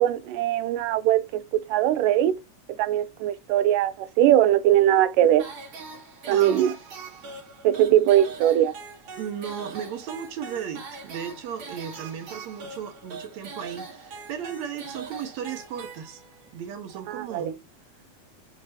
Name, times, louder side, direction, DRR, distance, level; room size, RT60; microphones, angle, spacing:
voice 1, 0.0-2.4 2.8-5.5 6.3-6.7 7.6-8.7 17.1-17.5, right 12 dB, 90° right, 2.2 m, -21 dB
sound 1, 5.4-16.5, right 4 dB, 50° right, 2.0 m, -42 dB
voice 2, 6.3-6.6 9.2-16.2 16.5-17.6, right 8 dB, 65° right, 2.3 m, -35 dB
6.6 x 6.0 x 2.8 m
omnidirectional pair, 3.7 m